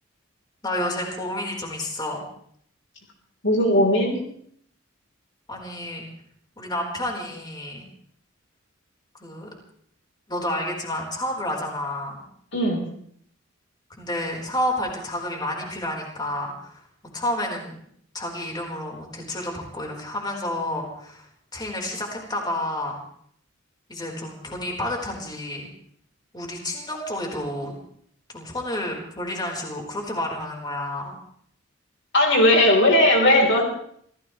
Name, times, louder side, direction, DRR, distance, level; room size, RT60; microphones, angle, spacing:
voice 1, 0.6-2.3 5.5-6.0 6.6-7.9 9.1-9.5 10.3-12.2 14.0-16.8 17.1-17.8 18.1-21.3 21.5-23.0 23.9-25.7 26.3-27.7 28.3-31.2, left 1 dB, 20° left, 0 dB, 4.2 m, -30 dB
voice 2, 3.4-4.2 12.5-12.9 32.1-33.6, left 1 dB, 65° left, 1 dB, 3.7 m, -18 dB
26.5 x 17.0 x 3.2 m, 0.65 s
head